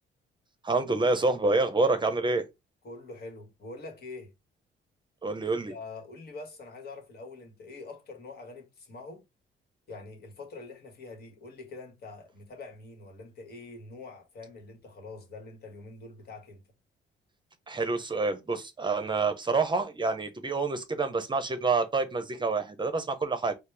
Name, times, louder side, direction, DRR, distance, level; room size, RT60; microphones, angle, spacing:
voice 1, 0.6-2.4 5.2-5.7 17.7-23.5, right 3 dB, 25° right, 0.7 m, -27 dB
voice 2, 2.8-4.3 5.5-9.2 9.9-16.6, left 3 dB, 55° left, 1.3 m, -45 dB
4.2 x 2.0 x 3.3 m
cardioid pair, 90°, 20 cm